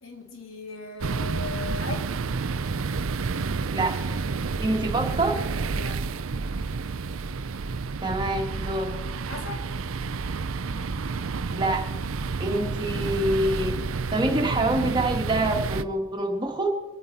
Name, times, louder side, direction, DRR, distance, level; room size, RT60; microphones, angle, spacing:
voice 1, 0.0-2.1 5.7-6.0 9.3-9.7, left 3 dB, 85° left, 3 dB, 2.3 m, -38 dB
sound 1, 1.0-15.8, right 4 dB, 90° right, 0.6 m, -30 dB
voice 2, 4.6-5.4 8.0-8.9 11.5-11.8 12.4-13.7 14.1-16.7, right 1 dB, 20° right, 1 dB, 2.0 m, -26 dB
24.0 x 9.3 x 4.2 m, 1.1 s
head